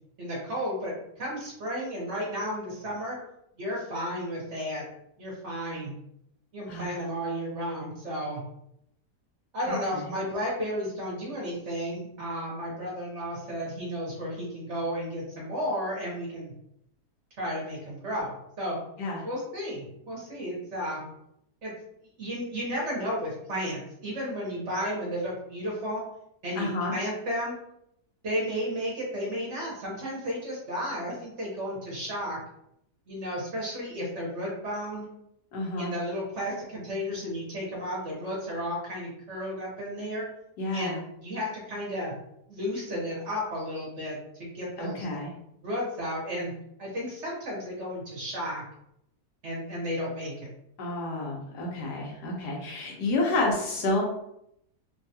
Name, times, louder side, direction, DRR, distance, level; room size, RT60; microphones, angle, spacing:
voice 1, 0.2-3.2 3.6-4.8 5.2-5.9 6.5-8.4 9.5-16.5 17.4-18.8 19.2-21.0 21.6-21.7 22.2-26.0 26.4-27.5 28.2-32.4 33.1-35.1 35.8-40.3 40.7-42.1 42.5-45.1 45.6-46.5 46.8-48.6 49.4-50.5, equal, 50° right, -4 dB, 1.1 m, -33 dB
voice 2, 9.6-10.1 19.0-19.2 26.6-26.9 35.5-35.9 40.6-41.0 44.8-45.3 50.8-54.0, left 2 dB, 90° left, -1 dB, 1.4 m, -30 dB
3.3 x 2.3 x 2.7 m, 0.76 s
omnidirectional pair, 1.7 m